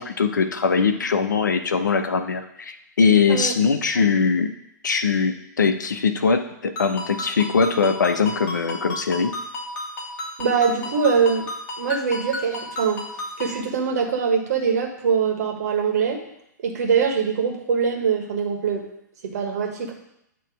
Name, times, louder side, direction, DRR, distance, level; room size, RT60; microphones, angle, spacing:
voice 1, 0.0-4.5 4.8-9.3, left 5 dB, 70° left, 8 dB, 0.8 m, -21 dB
Ringtone, 6.8-13.6, left 1 dB, 30° left, 1.9 m, -33 dB
voice 2, 10.4-11.5 11.8-13.0 13.4-16.2 16.6-18.9 19.2-19.9, right 6 dB, 55° right, 3 dB, 1.5 m, -23 dB
9.1 x 3.1 x 6.0 m, 0.79 s
figure-of-eight pair, 110°, 10 cm